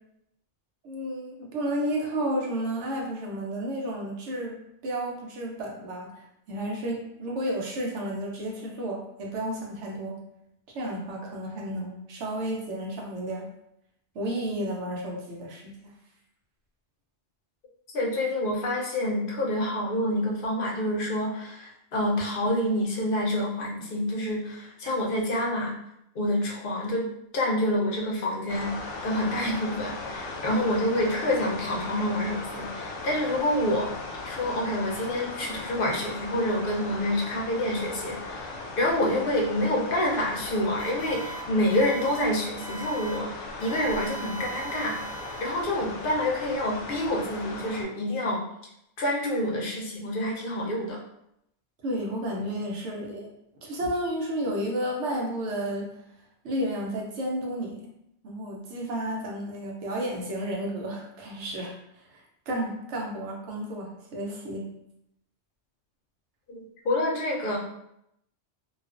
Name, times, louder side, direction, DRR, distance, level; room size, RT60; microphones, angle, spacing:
voice 1, 0.8-10.2 10.7-13.5 14.1-15.9 51.8-53.3 53.6-55.9 56.4-57.9 58.2-61.8 62.1-62.2 62.5-64.7, right 1 dB, 85° right, -1 dB, 1.0 m, -32 dB
voice 2, 17.9-25.7 26.1-27.1 27.3-28.7 29.0-33.9 34.2-45.0 45.4-48.4 49.0-51.0 66.5-67.6, left 1 dB, 55° left, -2 dB, 0.7 m, -27 dB
sound 1, 28.5-47.8, left 3 dB, 85° left, 0.9 m, -38 dB
sound 2, 40.8-41.4 41.7-42.2 42.6-43.2 43.6-45.9, right 5 dB, 25° right, 0.8 m, -40 dB
2.4 x 2.3 x 2.4 m, 0.79 s
omnidirectional pair, 1.2 m